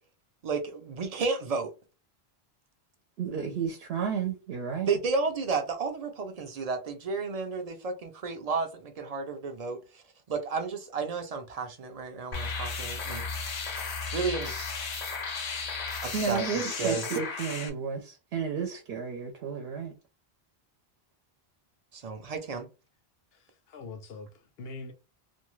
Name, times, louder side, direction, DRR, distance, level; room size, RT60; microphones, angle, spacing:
voice 1, 0.4-1.7 4.9-9.8 10.3-13.3 14.1-14.6 16.0-16.4 16.8-17.0 21.9-22.7, right 4 dB, 50° right, 0.5 m, -32 dB
voice 2, 3.2-4.9 16.1-19.9, right 6 dB, 80° right, 0.8 m, -32 dB
sound 1, 12.3-17.7, left 4 dB, 50° left, 0.6 m, -34 dB
voice 3, 23.3-24.9, left 3 dB, 75° left, 0.8 m, -43 dB
2.5 x 2.3 x 3.0 m
omnidirectional pair, 1.1 m